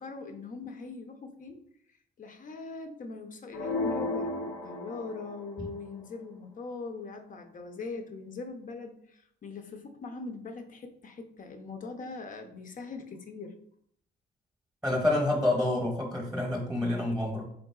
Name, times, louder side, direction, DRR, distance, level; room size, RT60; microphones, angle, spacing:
voice 1, 0.0-1.6 2.2-13.6, left 3 dB, 40° left, 6 dB, 0.6 m, -41 dB
sound 1, 3.5-5.6, left 3 dB, 85° left, 0.6 m, -33 dB
voice 2, 14.8-17.5, left 2 dB, ahead, -2 dB, 0.9 m, -28 dB
3.7 x 3.7 x 2.3 m, 0.69 s
cardioid pair, 90°, 20 cm